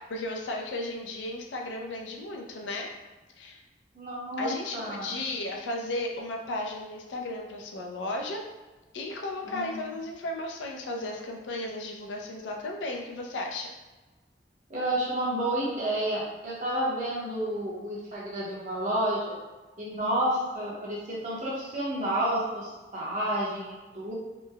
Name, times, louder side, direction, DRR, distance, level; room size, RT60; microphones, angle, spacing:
voice 1, 0.0-2.9 3.4-3.6 4.4-8.4 8.9-13.7, left 2 dB, 85° left, 1 dB, 0.4 m, -34 dB
voice 2, 3.9-5.2 9.5-9.9 14.7-19.3 19.8-24.1, right 1 dB, 45° right, -6 dB, 0.7 m, -30 dB
3.1 x 2.0 x 2.2 m, 1.2 s
head